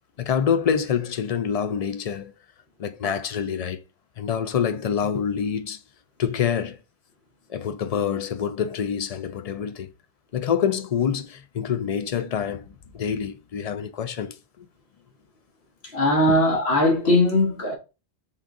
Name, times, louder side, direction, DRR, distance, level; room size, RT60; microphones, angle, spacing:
voice 1, 0.2-2.3 2.8-3.8 4.2-5.8 6.2-6.8 7.5-9.9 10.3-12.6 12.9-14.7 16.3-16.4, left 7 dB, 55° left, 0.4 m, -26 dB
voice 2, 15.9-17.8, left 1 dB, 75° left, 1.6 m, -19 dB
3.7 x 3.7 x 3.6 m
omnidirectional pair, 1.1 m